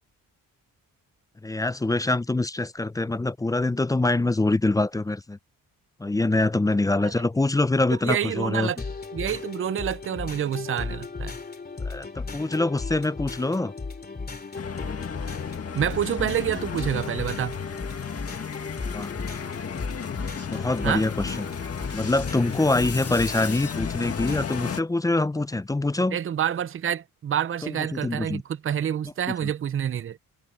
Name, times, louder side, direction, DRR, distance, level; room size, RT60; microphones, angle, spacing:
voice 1, 1.4-5.4 6.0-8.7 11.8-13.7 18.9-19.2 20.5-21.5 21.9-26.2 27.6-28.4 29.4-29.5, left 2 dB, 10° left, 0.4 m, -25 dB
voice 2, 7.9-8.8 9.1-11.3 15.7-17.6 20.8-21.0 26.1-30.2, right 9 dB, 35° right, 0.5 m, -28 dB
sound 1, 8.8-24.8, left 4 dB, 25° left, 2.7 m, -36 dB
sound 2, 14.5-24.8, left 7 dB, 40° left, 1.8 m, -34 dB
wide cardioid pair, 130°, 36 cm